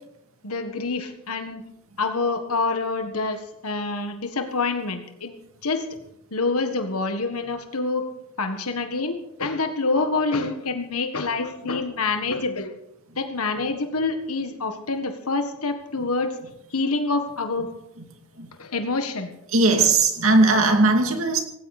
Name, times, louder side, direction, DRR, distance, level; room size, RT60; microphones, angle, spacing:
voice 1, 0.4-1.6 2.0-6.0 6.3-8.1 8.4-12.7 13.1-16.4 16.7-17.8 18.6-19.3 19.8-19.9, left 3 dB, 80° left, 6 dB, 1.6 m, -27 dB
voice 2, 19.5-21.4, right 3 dB, 65° right, 4 dB, 2.7 m, -18 dB
18.0 x 17.0 x 4.2 m, 0.80 s
head